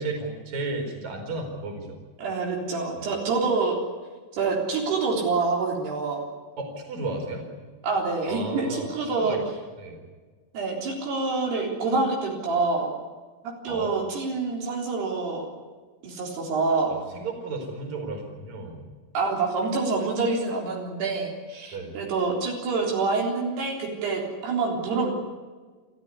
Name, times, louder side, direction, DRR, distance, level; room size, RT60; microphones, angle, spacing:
voice 1, 0.0-2.0 3.0-3.1 6.6-7.5 8.3-8.9 9.2-9.5 9.8-10.0 13.7-13.9 16.9-18.9 21.7-21.9, right 2 dB, 45° right, 2 dB, 5.6 m, -33 dB
voice 2, 2.2-3.8 4.3-6.2 7.8-9.4 10.5-12.9 13.6-15.5 16.0-16.9 19.1-25.1, right 4 dB, 75° right, 0 dB, 5.8 m, -26 dB
29.0 x 14.0 x 9.7 m, 1.4 s
omnidirectional pair, 4.7 m